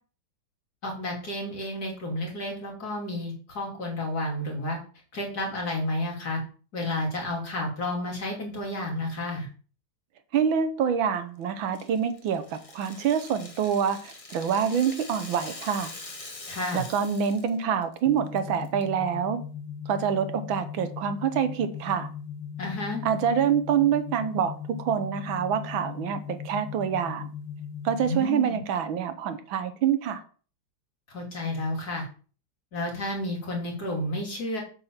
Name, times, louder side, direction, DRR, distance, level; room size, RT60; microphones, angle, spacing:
voice 1, 0.8-4.8 5.1-6.4 6.7-9.5 16.5-16.9 22.6-23.0 28.0-28.6 31.1-32.0 32.7-34.6, left 1 dB, 50° left, 3.6 m, -31 dB
voice 2, 10.3-15.9 16.7-19.4 19.9-22.1 23.0-24.5 24.8-27.3 27.8-30.2, right 8 dB, 75° right, 1.7 m, -26 dB
Rattle (instrument), 11.7-17.5 17.8-18.0 18.4-18.8, left 2 dB, 20° left, 1.0 m, -43 dB
sound 1, 18.1-28.1, left 7 dB, 75° left, 1.9 m, -38 dB
8.0 x 4.5 x 7.2 m
omnidirectional pair, 2.2 m